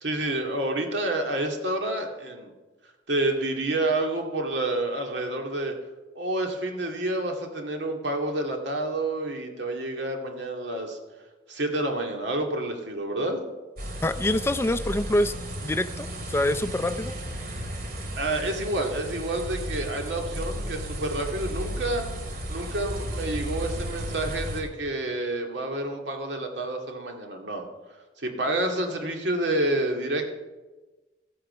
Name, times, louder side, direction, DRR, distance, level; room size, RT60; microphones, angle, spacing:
voice 1, 0.0-2.5 3.1-5.7 6.2-11.0 11.5-13.4 18.2-22.0 22.5-27.6 28.2-30.3, right 1 dB, 90° right, 2 dB, 2.2 m, -29 dB
sound 1, 13.8-24.6, equal, 55° right, 2.3 m, -34 dB
voice 2, 14.0-15.3 15.6-17.1, left 1 dB, 15° left, 12 dB, 0.4 m, -25 dB
14.0 x 8.9 x 6.8 m, 1.2 s
head